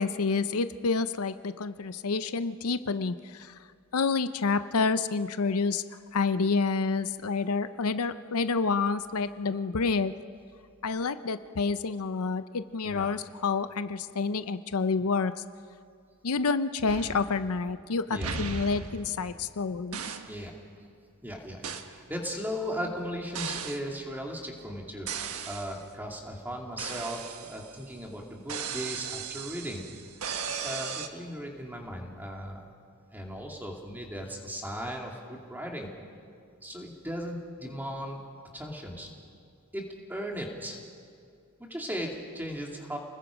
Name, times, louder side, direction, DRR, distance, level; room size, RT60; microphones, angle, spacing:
voice 1, 0.0-3.5 3.9-5.8 6.1-10.1 10.8-15.3 16.2-20.0, left 4 dB, 75° left, 12 dB, 0.6 m, -28 dB
sound 1, 16.9-17.8 18.2-19.5 19.9-20.4 21.6-21.9 23.3-23.9 25.1-25.8 26.8-27.9 28.5-31.1, right 6 dB, 75° right, 1.3 m, -37 dB
voice 2, 21.2-29.9 30.6-32.6 33.1-35.9 36.6-38.2 38.5-39.1 39.7-40.8 41.7-43.0, equal, 10° right, 0 dB, 2.6 m, -37 dB
29.5 x 20.5 x 5.2 m, 2.3 s
head